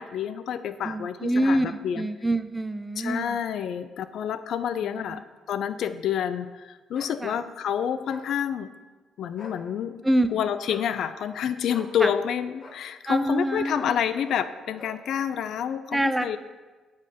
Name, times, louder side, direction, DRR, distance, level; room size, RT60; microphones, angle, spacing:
voice 1, 0.0-2.0 3.0-8.7 9.2-10.0 10.3-16.4, left 8 dB, 70° left, 12 dB, 0.4 m, -28 dB
voice 2, 0.8-3.4 4.8-5.2 7.2-7.4 10.0-10.3 12.0-12.1 13.1-14.0 15.9-16.4, right 1 dB, 10° right, 11 dB, 0.5 m, -26 dB
sound 1, 6.9-7.2 8.1-8.3 9.3-9.6 10.7-10.9 11.7-11.9 12.6-12.8 13.7-14.0 14.2-14.5 14.8-15.0, left 3 dB, 50° left, 0.9 m, -44 dB
9.3 x 3.2 x 6.8 m, 1.3 s
cardioid pair, 90°, 0 cm